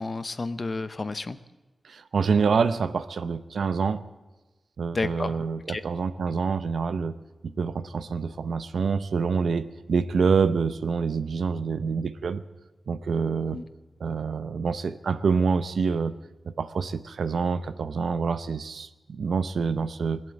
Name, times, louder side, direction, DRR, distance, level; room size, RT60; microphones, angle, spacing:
voice 1, 0.0-1.4 4.9-5.4 5.7-5.8 13.5-13.6, left 3 dB, 40° left, 12 dB, 0.7 m, -30 dB
voice 2, 1.8-4.0 4.8-7.1 7.4-12.4 12.9-13.6 14.0-16.1 16.4-20.2, right 5 dB, 80° right, 12 dB, 0.7 m, -26 dB
20.5 x 7.6 x 8.7 m, 1.2 s
wide cardioid pair, 95°, 0 cm